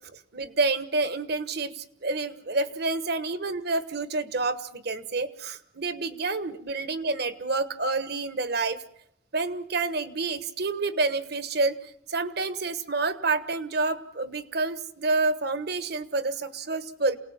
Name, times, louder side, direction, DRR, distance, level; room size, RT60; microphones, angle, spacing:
voice 1, 0.3-8.8 9.3-11.8 12.1-17.2, right 3 dB, 55° right, 12 dB, 1.3 m, -28 dB
28.0 x 18.5 x 7.4 m, 0.72 s
head